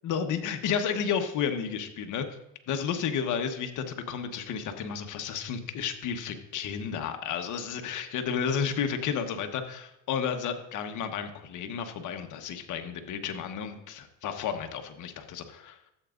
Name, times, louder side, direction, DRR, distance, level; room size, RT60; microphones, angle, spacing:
voice 1, 0.0-2.3 2.7-15.8, left 7 dB, 60° left, 6 dB, 1.2 m, -32 dB
13.0 x 8.2 x 2.6 m, 0.87 s
supercardioid pair, 90°, 34 cm